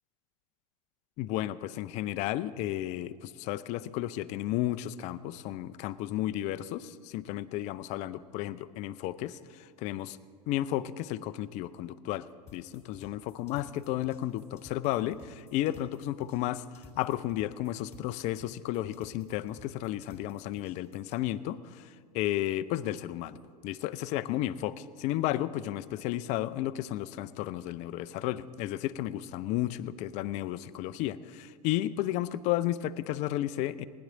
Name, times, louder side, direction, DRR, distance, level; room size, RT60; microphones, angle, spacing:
voice 1, 1.2-10.2 10.5-23.4 23.6-33.8, left 14 dB, 35° left, 15 dB, 0.5 m, -33 dB
sound 1, 12.5-21.2, left 4 dB, 15° left, 3.1 m, -56 dB
20.0 x 10.5 x 3.9 m, 2.1 s
figure-of-eight pair, 85°, 20 cm